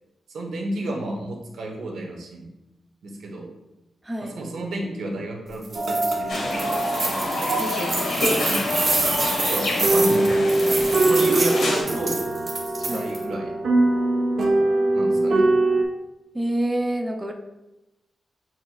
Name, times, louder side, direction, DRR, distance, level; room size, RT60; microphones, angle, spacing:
voice 1, 0.3-2.5 3.0-3.5 4.2-6.7 8.4-8.7 9.4-12.2 12.8-13.5 14.9-15.4, right 1 dB, 85° right, 0 dB, 1.0 m, -31 dB
voice 2, 4.0-4.3 7.6-8.1 12.9-13.1 16.3-17.3, right 1 dB, 15° right, 2 dB, 0.4 m, -27 dB
sound 1, 5.6-6.1 6.5-13.2, right 2 dB, 40° right, 1.4 m, -27 dB
sound 2, 5.7-15.8, right 2 dB, 65° right, 0.7 m, -23 dB
sound 3, 6.3-11.8, left 1 dB, 80° left, 1.3 m, -27 dB
7.3 x 3.1 x 2.3 m, 0.96 s
wide cardioid pair, 135°, 0 cm